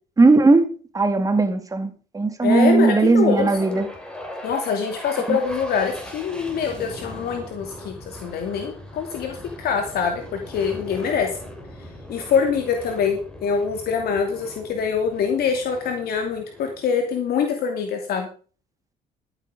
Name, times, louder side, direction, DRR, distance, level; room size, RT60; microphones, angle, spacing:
voice 1, 0.2-3.9 5.3-5.4, right 3 dB, 20° right, 8 dB, 2.1 m, -18 dB
voice 2, 2.4-3.5 4.4-7.9 8.2-11.3 12.1-18.3, left 6 dB, 65° left, 4 dB, 2.6 m, -24 dB
sound 1, 3.3-17.5, equal, 5° left, 3.5 m, -39 dB
14.0 x 8.4 x 5.0 m, 0.39 s
cardioid pair, 110°, 17 cm